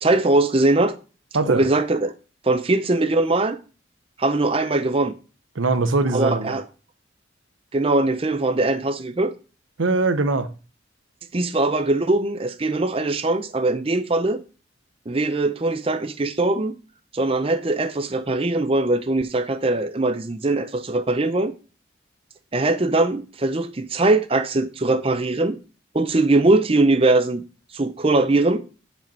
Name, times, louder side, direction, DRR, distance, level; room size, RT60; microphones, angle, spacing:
voice 1, 0.0-0.9 1.5-2.1 2.4-3.6 4.2-5.1 6.1-6.6 7.7-9.3 11.3-14.4 15.1-16.8 17.1-21.5 22.5-25.6 25.9-27.4 27.7-28.6, right 2 dB, 30° right, 0.6 m, -21 dB
voice 2, 5.5-6.6 9.8-10.5, right 3 dB, 90° right, 0.8 m, -21 dB
7.5 x 5.3 x 5.4 m
head